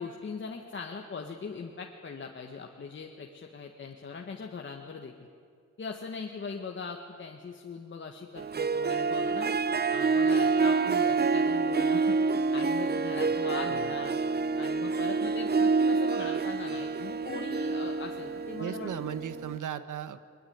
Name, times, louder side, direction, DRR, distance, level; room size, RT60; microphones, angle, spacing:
voice 1, 0.0-5.1 5.8-9.5 9.9-14.2 14.5-18.9, left 5 dB, 40° left, 2 dB, 1.6 m, -40 dB
Harp, 8.4-19.6, right 4 dB, 35° right, 0.7 m, -27 dB
voice 2, 18.6-20.2, right 9 dB, 85° right, 12 dB, 1.3 m, -37 dB
22.5 x 22.0 x 9.5 m, 2.3 s
wide cardioid pair, 145°, 30 cm